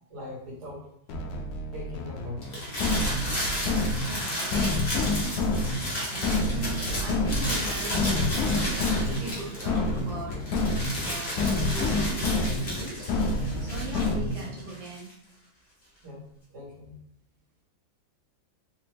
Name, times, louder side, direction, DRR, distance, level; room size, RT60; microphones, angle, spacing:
voice 1, 0.1-0.9 1.7-2.8 16.0-16.3 16.5-17.0, left 1 dB, 65° right, -4 dB, 1.8 m, -41 dB
sound 1, 1.1-14.6, left 2 dB, 70° left, 0.9 m, -28 dB
sound 2, 2.4-10.0 10.3-15.1, equal, 30° left, 0.9 m, -33 dB
voice 2, 4.0-4.6 4.8-5.2 6.0-10.7 11.0-11.4 11.7-13.1 13.6-15.1, right 3 dB, 85° right, 0 dB, 1.5 m, -40 dB
4.0 x 2.5 x 3.1 m, 0.75 s
omnidirectional pair, 2.0 m